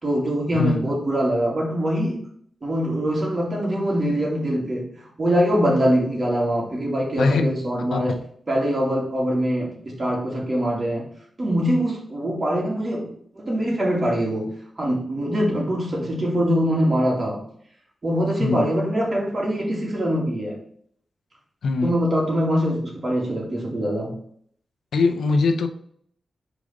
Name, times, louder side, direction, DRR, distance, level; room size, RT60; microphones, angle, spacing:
voice 1, 0.0-2.2 2.6-8.2 8.5-11.1 11.4-17.4 18.0-20.6 21.8-24.1, equal, 40° right, -2 dB, 2.5 m, -23 dB
voice 2, 0.5-0.8 7.2-7.5 7.8-8.2 18.4-18.7 21.6-21.9 24.9-25.7, left 3 dB, 90° left, 7 dB, 0.7 m, -22 dB
5.1 x 4.0 x 5.1 m, 0.62 s
cardioid pair, 75°, 0 cm